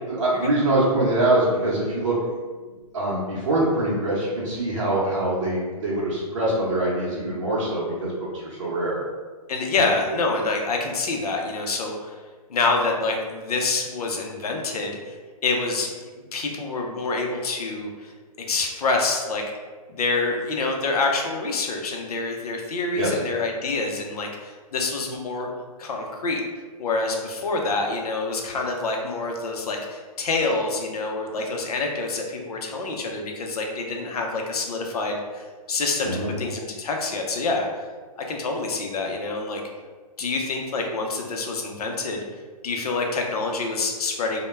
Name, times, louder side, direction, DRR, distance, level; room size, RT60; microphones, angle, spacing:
voice 1, 0.1-2.2 2.9-9.0 9.7-9.8 22.9-23.1 36.0-36.3, right 1 dB, 55° right, -7 dB, 0.8 m, -24 dB
voice 2, 9.5-12.2 12.5-15.2 15.4-18.1 18.5-19.4 19.9-25.5 25.8-26.4 26.8-37.7 38.3-39.6 40.2-42.2 42.6-44.4, left 3 dB, 75° left, 1 dB, 0.6 m, -27 dB
2.2 x 2.1 x 3.2 m, 1.4 s
hypercardioid pair, 165°, 19 cm